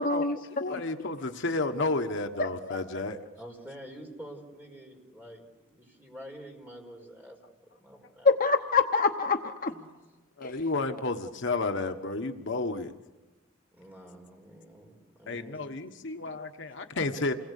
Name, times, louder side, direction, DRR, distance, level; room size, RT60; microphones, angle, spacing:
voice 1, 0.0-0.4 0.7-0.8 2.3-3.0 8.2-9.7 10.4-10.6, left 4 dB, 45° left, 6 dB, 1.0 m, -26 dB
voice 2, 0.5-3.2 10.4-12.9 15.3-17.3, left 3 dB, 60° left, 6 dB, 1.3 m, -31 dB
voice 3, 3.3-7.4 7.8-8.3 9.7-9.9 13.7-15.7, equal, 10° right, 1 dB, 5.1 m, -47 dB
29.0 x 20.5 x 8.4 m, 1.2 s
head